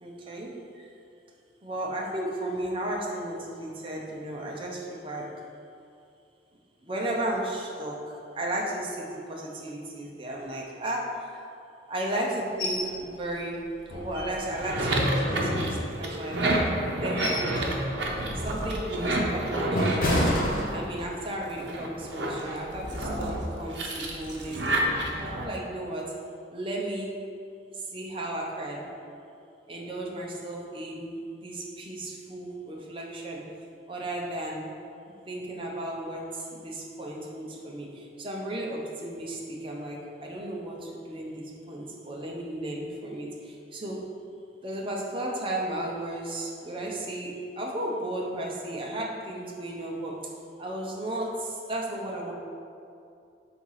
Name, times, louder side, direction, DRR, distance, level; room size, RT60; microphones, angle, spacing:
voice 1, 0.0-0.9 1.6-5.3 6.8-8.0 8.3-11.4 11.9-13.6 13.9-16.4 16.9-17.8 18.3-20.2 20.7-24.8 25.2-26.1 26.5-27.1 27.7-28.8 29.7-33.4 33.9-34.6 35.3-44.0 44.6-50.2 50.6-52.3, right 1 dB, 30° right, -2 dB, 0.8 m, -34 dB
sound 1, 12.6-12.9 13.3-13.4 13.8-14.7 15.2-16.2 16.8-17.6 18.0-18.2 18.8-21.2 21.6-21.8, left 1 dB, 50° left, 1.0 m, -29 dB
sound 2, 14.4-21.1 21.5-25.4, right 1 dB, 70° right, 0.8 m, -29 dB
4.6 x 3.7 x 5.6 m, 2.5 s
head